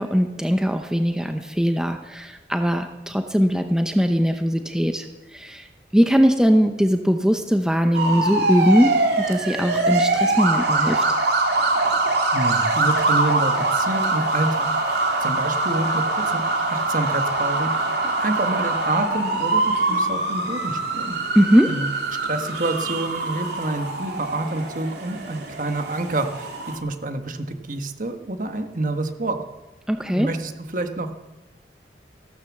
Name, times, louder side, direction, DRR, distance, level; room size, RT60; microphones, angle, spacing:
voice 1, 0.0-5.1 5.3-5.7 5.9-11.0 21.3-21.7 29.9-30.3, equal, 5° right, 6 dB, 0.7 m, -20 dB
sound 1, 7.9-26.8, right 2 dB, 65° right, 2.7 m, -23 dB
voice 2, 12.3-21.2 21.7-29.4 30.1-31.1, right 2 dB, 50° right, 7 dB, 1.4 m, -28 dB
15.5 x 12.5 x 7.3 m, 1.1 s
head